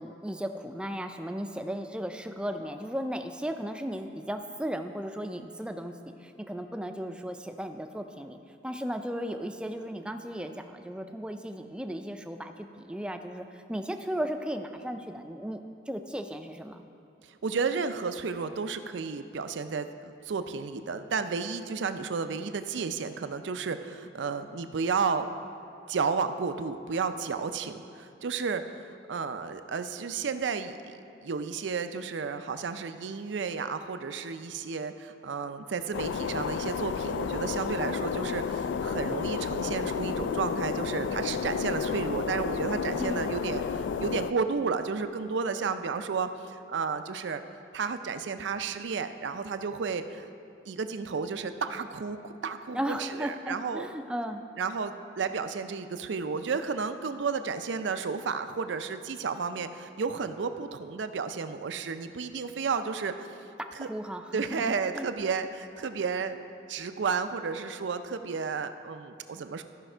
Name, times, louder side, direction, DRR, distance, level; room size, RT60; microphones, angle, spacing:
voice 1, 0.0-5.9 6.2-8.4 8.6-16.8 43.0-43.3 52.7-54.4 63.8-65.1, equal, 5° right, 6 dB, 0.4 m, -35 dB
voice 2, 17.2-25.3 25.9-30.9 31.2-47.4 47.7-50.3 50.7-53.9 54.6-63.3 63.7-63.9 64.3-66.4 66.7-69.6, right 5 dB, 85° right, 9 dB, 0.5 m, -32 dB
sound 1, 35.9-44.3, left 6 dB, 85° left, 0.3 m, -31 dB
14.0 x 5.7 x 4.4 m, 2.7 s
head